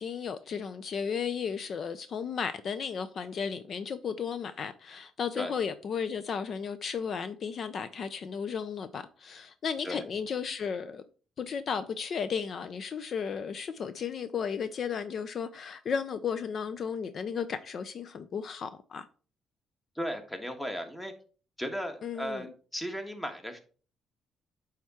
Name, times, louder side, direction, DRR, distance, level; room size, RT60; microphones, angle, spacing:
voice 1, 0.0-11.0 11.4-19.1 22.0-22.5, left 6 dB, 55° left, 0.5 m, -34 dB
voice 2, 19.9-21.1 21.6-23.6, equal, 10° left, 1.4 m, -36 dB
9.0 x 3.6 x 4.3 m
cardioid pair, 90°, 0 cm